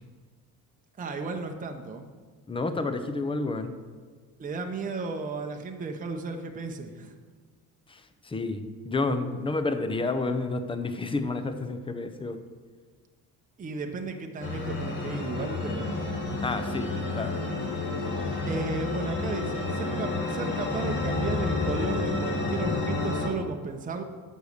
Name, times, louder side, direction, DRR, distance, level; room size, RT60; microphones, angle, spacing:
voice 1, 1.0-2.0 4.4-7.1 13.6-16.0 18.4-24.0, right 4 dB, 25° right, 3 dB, 0.8 m, -34 dB
voice 2, 2.5-3.7 7.9-12.4 16.4-17.3, left 3 dB, 15° left, 8 dB, 0.6 m, -30 dB
sound 1, 14.4-23.3, left 3 dB, 30° left, 2.2 m, -30 dB
8.0 x 6.6 x 6.6 m, 1.5 s
cardioid pair, 145°, 35 cm